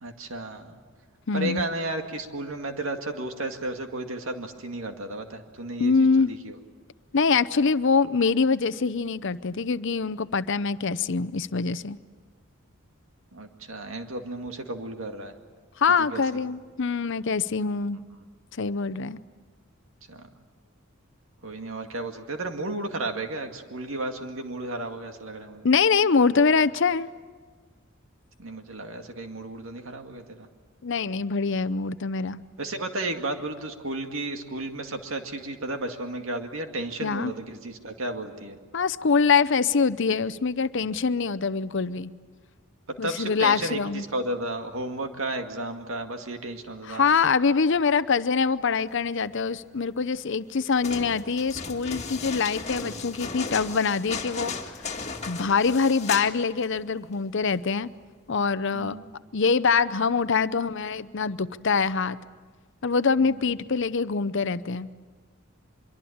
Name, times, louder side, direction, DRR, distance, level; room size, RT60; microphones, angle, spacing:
voice 1, 0.0-0.8 1.3-6.6 13.3-15.3 16.0-16.2 20.1-20.3 21.4-25.7 28.4-30.5 32.6-38.6 42.9-47.1 58.7-59.1 63.2-63.4, right 2 dB, 70° right, 5 dB, 2.2 m, -33 dB
voice 2, 1.3-1.7 5.8-6.3 7.1-12.0 15.8-18.0 18.6-19.2 25.6-27.1 30.8-32.4 37.0-37.3 38.7-42.1 43.0-44.0 46.9-54.5 55.3-57.9 58.3-59.0 59.3-62.2 62.8-64.9, left 5 dB, 60° left, 15 dB, 0.7 m, -24 dB
sound 1, 50.7-56.4 56.6-56.7, left 4 dB, 30° left, 2.0 m, -35 dB
24.5 x 23.5 x 8.7 m, 1.5 s
head